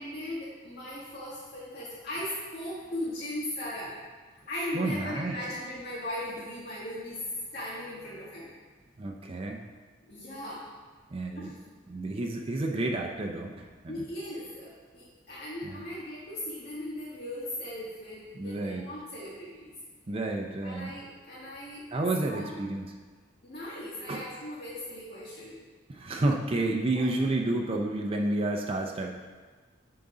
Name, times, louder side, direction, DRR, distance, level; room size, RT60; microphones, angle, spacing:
voice 1, 0.0-3.9 4.5-7.2 7.5-8.5 10.1-10.7 11.4-11.7 13.9-19.7 20.6-21.9 22.3-22.5 23.4-25.5 26.9-27.1, left 1 dB, 55° left, -8 dB, 1.6 m, -38 dB
voice 2, 4.7-5.4 9.0-9.6 11.1-11.5 11.9-14.0 15.6-15.9 18.4-18.8 20.1-20.9 21.9-22.9 24.1-24.2 25.9-29.2, right 2 dB, 30° right, 1 dB, 0.5 m, -30 dB
9.1 x 3.9 x 4.8 m, 1.4 s
head